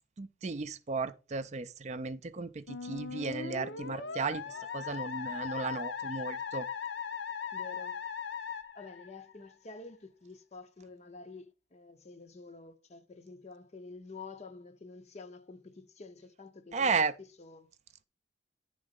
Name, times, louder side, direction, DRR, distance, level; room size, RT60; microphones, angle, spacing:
voice 1, 0.2-4.4 4.7-6.7 16.7-17.1, right 4 dB, 40° right, 0.4 m, -34 dB
Musical instrument, 2.7-9.5, left 6 dB, 70° left, 0.7 m, -39 dB
voice 2, 7.5-8.0 8.8-17.7, left 4 dB, 35° left, 0.6 m, -49 dB
9.8 x 3.9 x 5.1 m
head